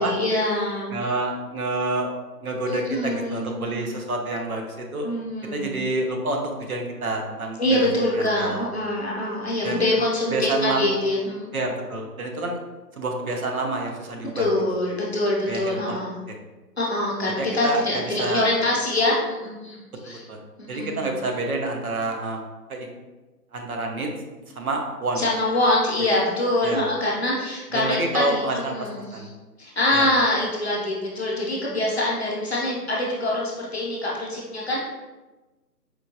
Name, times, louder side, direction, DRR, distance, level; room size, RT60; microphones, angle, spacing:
voice 1, 0.0-1.1 2.7-3.9 5.0-5.7 7.6-11.5 14.3-16.2 16.8-19.8 20.0-20.2 20.7-21.0 25.1-29.3 29.6-34.9, left 1 dB, 40° left, -5 dB, 0.7 m, -24 dB
voice 2, 0.9-2.1 2.4-5.1 5.5-7.8 8.1-8.6 9.6-9.9 10.3-10.9 11.5-12.6 13.0-14.5 15.5-16.0 17.4-18.5 20.1-20.4 20.7-22.4 22.7-22.9 23.5-24.1 24.6-25.2 26.6-26.8 27.7-29.3 29.9-30.1, right 2 dB, 60° right, 2 dB, 0.7 m, -28 dB
4.4 x 2.2 x 2.7 m, 1.2 s
hypercardioid pair, 165°, 50 cm